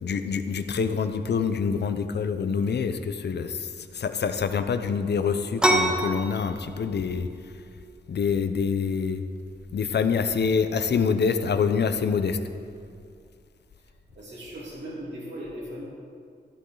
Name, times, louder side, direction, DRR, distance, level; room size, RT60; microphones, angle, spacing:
voice 1, 0.0-7.3 8.1-9.2 9.7-12.4, left 6 dB, 70° left, 9 dB, 0.7 m, -26 dB
sound 1, 5.6-15.0, right 1 dB, 5° right, 1.1 m, -32 dB
voice 2, 14.1-15.8, equal, 85° right, -7 dB, 2.9 m, -38 dB
13.5 x 12.0 x 3.9 m, 2.3 s
wide cardioid pair, 130°, 18 cm